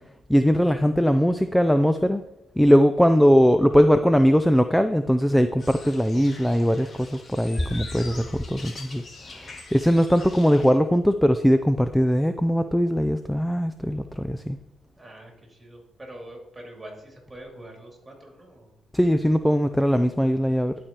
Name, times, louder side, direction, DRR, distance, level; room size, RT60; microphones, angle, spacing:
voice 1, 0.3-2.2 2.6-9.0 9.4-14.6 18.9-20.8, equal, 5° left, 9 dB, 0.4 m, -20 dB
sound 1, 5.6-10.7, left 3 dB, 40° left, 1.5 m, -43 dB
voice 2, 15.0-18.7, right 1 dB, 20° right, 0 dB, 2.7 m, -44 dB
12.0 x 4.8 x 2.9 m, 0.96 s
cardioid pair, 90°, 0 cm